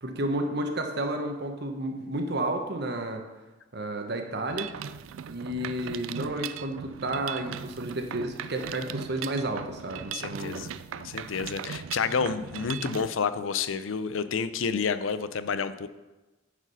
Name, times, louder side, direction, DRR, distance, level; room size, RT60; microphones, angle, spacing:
voice 1, 0.0-3.2 3.7-4.7 5.3-10.7, right 1 dB, 55° right, 4 dB, 1.1 m, -31 dB
Mechanisms, 4.5-13.1, right 8 dB, 90° right, 0.3 m, -38 dB
voice 2, 10.1-15.9, left 5 dB, 85° left, 13 dB, 0.5 m, -30 dB
9.8 x 4.9 x 5.4 m, 1.1 s
head